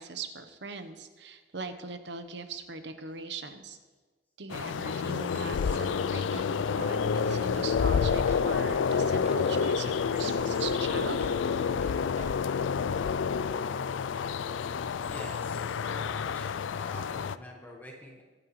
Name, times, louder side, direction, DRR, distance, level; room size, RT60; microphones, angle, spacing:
voice 1, 0.0-3.8 4.4-11.2, right 4 dB, 70° right, 8 dB, 1.0 m, -40 dB
sound 1, 4.5-17.4, left 6 dB, 85° left, 0.4 m, -29 dB
sound 2, 4.9-12.7, right 1 dB, 35° right, 1.5 m, -48 dB
voice 2, 15.1-18.2, left 1 dB, 10° left, -1 dB, 1.5 m, -46 dB
23.0 x 8.9 x 3.2 m, 1.3 s
head